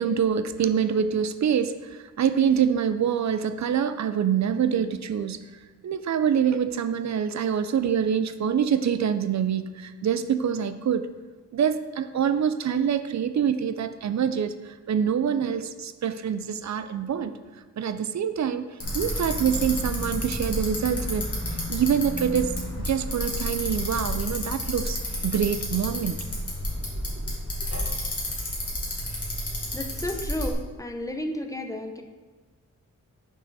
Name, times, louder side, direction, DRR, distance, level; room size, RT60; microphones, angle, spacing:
voice 1, 0.0-5.5 5.8-11.1 11.5-17.3 17.8-18.7 18.9-21.3 21.7-26.2, right 8 dB, 65° right, 11 dB, 0.5 m, -25 dB
Bicycle, 18.8-30.5, left 1 dB, 50° left, 2.1 m, -30 dB
voice 2, 29.7-32.0, left 1 dB, 10° left, 4 dB, 0.7 m, -32 dB
6.3 x 5.6 x 4.0 m, 1.4 s
wide cardioid pair, 100°, 31 cm